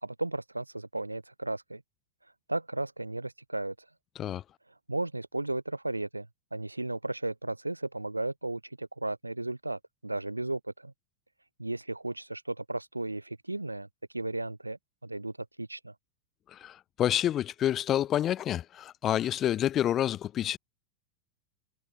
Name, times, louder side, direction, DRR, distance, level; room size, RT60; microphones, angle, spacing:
voice 1, 0.0-1.8 2.5-3.7 4.9-10.9 11.6-13.9 14.1-15.9, right 2 dB, 85° right, 2.9 m, -35 dB
voice 2, 16.5-20.6, left 11 dB, 30° left, 2.9 m, -28 dB
figure-of-eight pair, 90°, 0 cm